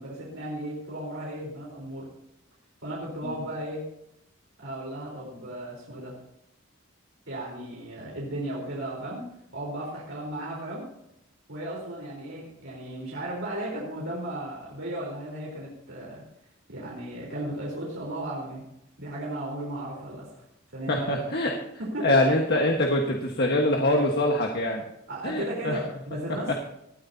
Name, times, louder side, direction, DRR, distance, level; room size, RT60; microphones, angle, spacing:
voice 1, 0.0-2.1 2.8-3.8 4.6-6.2 7.3-10.9 11.5-16.2 16.7-18.6 19.0-20.4 20.7-21.4 21.8-22.2 25.1-26.6, right 1 dB, 70° right, -4 dB, 4.2 m, -35 dB
voice 2, 20.9-21.5 22.0-24.8 25.2-25.8 26.5-26.6, left 1 dB, 55° left, 1 dB, 1.5 m, -24 dB
19.0 x 13.0 x 2.9 m, 0.80 s
head